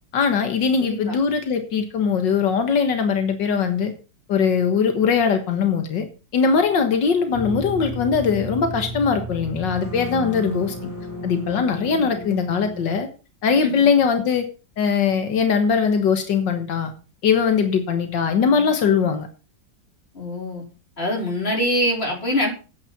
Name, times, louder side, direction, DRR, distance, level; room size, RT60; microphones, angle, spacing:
voice 1, 0.1-3.9 4.3-6.1 6.3-10.9 11.2-13.1 13.4-14.5 14.8-16.9 17.2-19.3, left 6 dB, 85° left, 7 dB, 2.1 m, -21 dB
voice 2, 0.8-1.2 11.8-12.1 13.6-13.9 20.1-20.6 21.0-22.5, left 1 dB, 35° left, 0 dB, 4.8 m, -24 dB
sound 1, 7.3-13.0, right 1 dB, 45° right, 5.4 m, -33 dB
9.9 x 9.0 x 5.9 m, 0.33 s
omnidirectional pair, 1.9 m